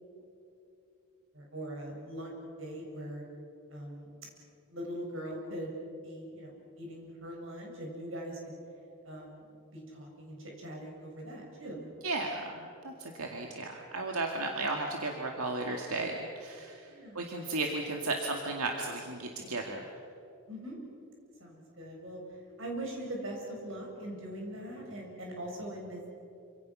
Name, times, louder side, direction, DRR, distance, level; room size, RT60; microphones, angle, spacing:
voice 1, 1.3-3.2 3.7-4.2 4.7-5.7 6.0-8.5 9.1-11.9 16.9-17.2 20.5-20.8 21.4-22.2 22.6-26.1, right 1 dB, 65° right, 0 dB, 7.2 m, -41 dB
voice 2, 12.0-19.9, right 2 dB, 90° right, 1 dB, 2.3 m, -35 dB
27.5 x 26.5 x 6.4 m, 2.7 s
head